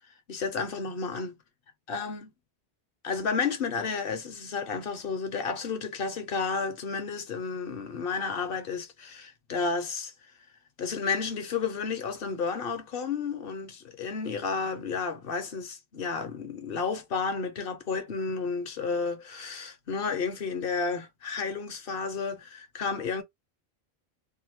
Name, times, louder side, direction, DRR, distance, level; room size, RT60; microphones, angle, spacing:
voice 1, 0.3-1.3 1.9-2.3 3.0-10.1 10.8-23.2, left 5 dB, 60° left, 0.9 m, -32 dB
2.7 x 2.6 x 2.8 m
omnidirectional pair, 1.1 m